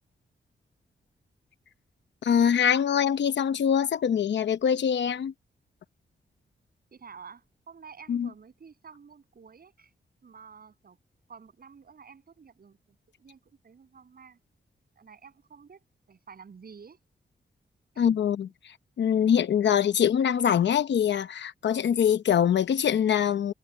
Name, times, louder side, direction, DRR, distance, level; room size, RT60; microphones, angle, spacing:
voice 1, 2.2-5.3 8.1-8.3 18.0-23.5, left 8 dB, 85° left, 0.9 m, -24 dB
voice 2, 6.9-9.9 10.2-11.0 11.3-14.4 15.0-17.0 17.9-18.0, right 6 dB, 60° right, 7.4 m, -50 dB
wide cardioid pair, 110°, 18 cm